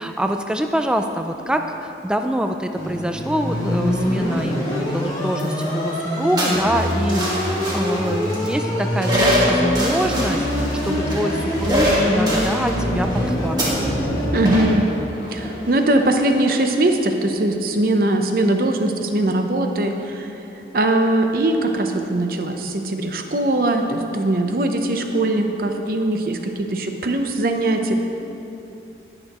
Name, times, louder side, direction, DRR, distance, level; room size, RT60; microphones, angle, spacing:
voice 1, 0.0-13.9, equal, 5° right, 5 dB, 0.3 m, -25 dB
sound 1, 2.7-14.6, equal, 20° left, 1.4 m, -24 dB
sound 2, 3.5-17.0, equal, 25° right, 1.8 m, -27 dB
voice 2, 14.3-14.9 15.3-20.3 20.7-28.0, right 1 dB, 50° right, 5 dB, 0.7 m, -21 dB
19.0 x 6.6 x 3.0 m, 2.9 s
head